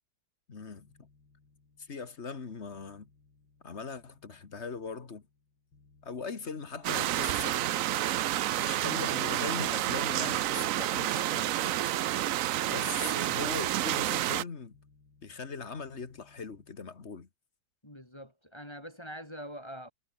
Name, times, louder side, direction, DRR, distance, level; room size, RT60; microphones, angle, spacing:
voice 1, 0.5-0.9 1.8-3.1 3.6-5.2 6.0-7.6 8.5-11.7 12.7-14.8 15.2-17.3, left 5 dB, 35° left, 2.0 m, -40 dB
sound 1, 0.8-16.7, left 4 dB, 80° left, 4.2 m, -65 dB
sound 2, 6.8-14.4, right 13 dB, 70° right, 0.8 m, -29 dB
voice 2, 17.8-19.9, equal, 15° left, 2.9 m, -44 dB
omnidirectional pair, 2.0 m